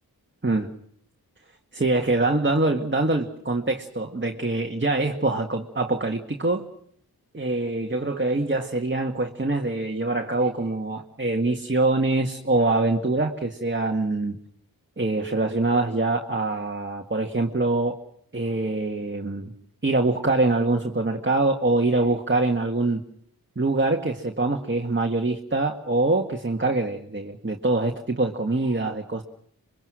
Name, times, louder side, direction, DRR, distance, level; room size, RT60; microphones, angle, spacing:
voice 1, 1.7-6.6 7.3-14.4 15.0-18.0 18.3-19.5 19.8-23.0 23.5-29.2, right 2 dB, 30° right, 3 dB, 1.8 m, -24 dB
26.5 x 23.5 x 6.3 m, 0.67 s
wide cardioid pair, 60°, 37 cm